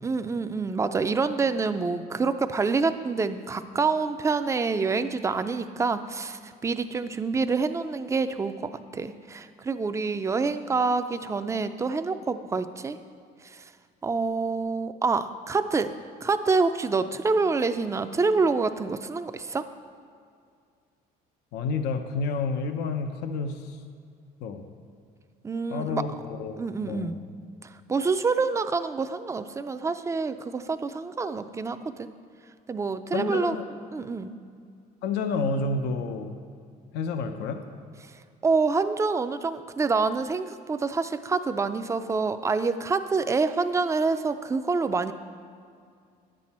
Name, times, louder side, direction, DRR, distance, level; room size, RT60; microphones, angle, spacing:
voice 1, 0.0-13.0 13.4-13.6 14.0-15.9 16.2-19.7 25.4-26.0 26.6-27.2 27.6-32.1 32.7-33.6 33.9-34.4 38.0-38.1 38.4-45.1, right 4 dB, 15° right, 10 dB, 0.4 m, -27 dB
voice 2, 21.5-23.8 24.4-24.6 25.7-27.2 33.1-33.7 35.0-36.4 36.9-37.6, left 4 dB, 85° left, 7 dB, 0.7 m, -30 dB
9.7 x 7.6 x 4.2 m, 2.3 s
cardioid pair, 110°, 17 cm